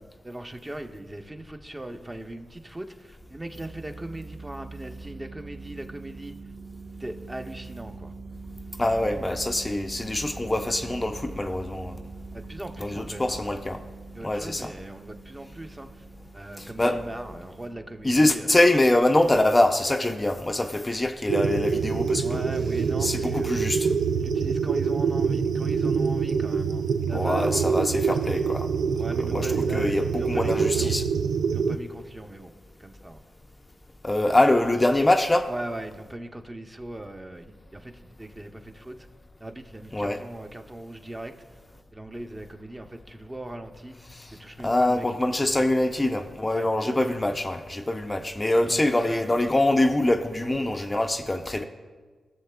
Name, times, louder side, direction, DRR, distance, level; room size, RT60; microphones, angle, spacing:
voice 1, 0.0-6.4 7.0-8.1 12.3-13.4 14.1-16.0 16.3-18.5 22.2-23.6 24.1-27.7 29.0-30.9 31.5-32.5 32.8-33.2 34.2-34.4 35.5-39.1 39.4-41.3 41.9-44.0 44.3-45.3 45.6-45.7 46.5-46.7 48.7-49.4, right 1 dB, 25° right, 5 dB, 0.8 m, -39 dB
sound 1, 3.2-19.5, right 3 dB, 50° right, 1.3 m, -43 dB
voice 2, 8.8-12.0 12.8-13.8 14.2-14.7 16.6-17.0 18.0-22.4 23.0-23.9 27.1-28.7 29.1-31.0 34.0-35.5 39.9-40.2 44.1-44.3 44.6-51.6, left 1 dB, 25° left, 6 dB, 0.5 m, -24 dB
sound 2, 21.3-31.8, right 6 dB, 80° right, 0.3 m, -25 dB
17.0 x 6.5 x 2.3 m, 1.5 s
supercardioid pair, 40°, 0 cm